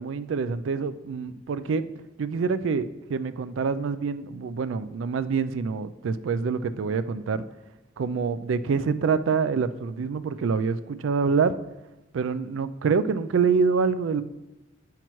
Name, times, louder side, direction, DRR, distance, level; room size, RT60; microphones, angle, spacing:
voice 1, 0.0-1.9 2.2-7.4 8.0-11.6 12.1-14.2, right 5 dB, 80° right, 13 dB, 0.4 m, -26 dB
9.0 x 5.8 x 3.1 m, 1.0 s
head